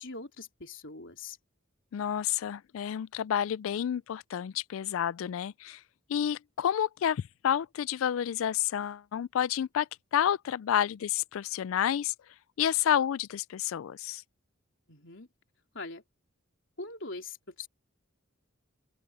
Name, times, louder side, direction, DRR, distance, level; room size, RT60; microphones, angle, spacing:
voice 1, 0.0-1.4 14.9-15.3 15.7-16.0 16.8-17.7, left 3 dB, 65° left, 4.1 m, -42 dB
voice 2, 1.9-5.8 6.1-12.1 12.6-14.2, left 9 dB, 80° left, 0.3 m, -30 dB
head